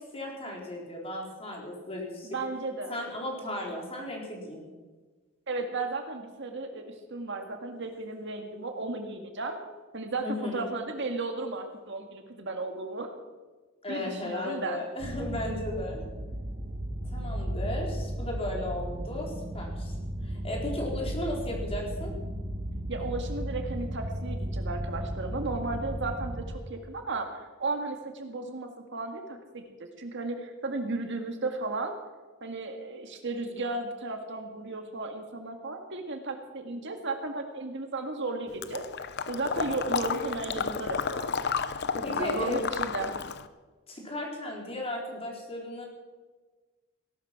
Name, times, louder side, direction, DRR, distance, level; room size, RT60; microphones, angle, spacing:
voice 1, 0.0-2.4 2.9-4.7 10.2-10.7 13.8-16.0 17.1-20.0 20.2-22.1 42.0-42.6 43.9-45.9, left 1 dB, 30° left, -1 dB, 4.1 m, -35 dB
voice 2, 2.2-2.9 5.5-9.6 9.9-13.1 13.9-14.8 22.9-29.7 30.0-32.0 32.4-38.8 39.3-41.4 42.0-43.1, right 3 dB, 60° right, 5 dB, 1.9 m, -34 dB
sound 1, 15.0-26.5, equal, 40° right, 1.6 m, -35 dB
Water / Liquid, 38.6-43.5, left 5 dB, 55° left, 0.8 m, -32 dB
18.0 x 12.0 x 6.0 m, 1.3 s
head